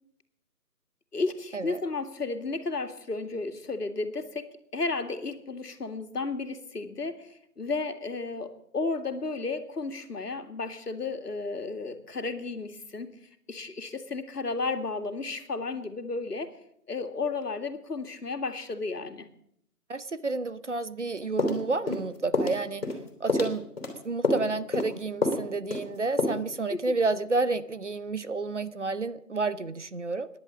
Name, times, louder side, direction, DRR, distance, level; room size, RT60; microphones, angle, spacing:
voice 1, 1.1-13.2 13.5-16.5 16.9-19.3 26.7-26.8, left 3 dB, 80° left, 7 dB, 2.2 m, -33 dB
voice 2, 19.9-22.9 23.2-23.6 24.0-30.3, right 3 dB, 50° right, 15 dB, 0.8 m, -30 dB
sound 1, 21.4-22.0 22.3-22.6 22.8-23.0 23.3-23.9 24.2-24.5 24.7-24.9 25.2-25.4 25.7-25.9 26.2-26.3, left 2 dB, 40° left, 3.3 m, -27 dB
16.5 x 10.5 x 7.3 m, 0.70 s
figure-of-eight pair, 180°, 46 cm